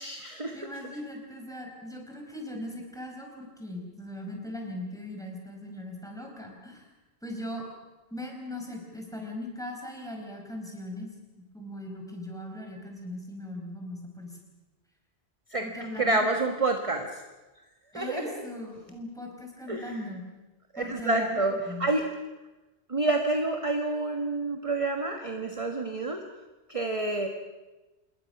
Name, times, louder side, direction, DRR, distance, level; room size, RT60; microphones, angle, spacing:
voice 1, 0.0-0.6 15.5-15.7 16.0-17.2 17.9-18.4 19.7-20.0 20.7-22.0 22.9-26.2 26.7-27.3, right 2 dB, 30° right, 4 dB, 1.5 m, -28 dB
voice 2, 0.5-6.8 7.2-7.6 8.1-11.1 11.5-14.4 15.6-16.3 17.9-20.2 20.8-21.9, left 1 dB, 5° left, 1 dB, 5.0 m, -39 dB
27.5 x 21.0 x 6.0 m, 1.1 s
omnidirectional pair, 1.2 m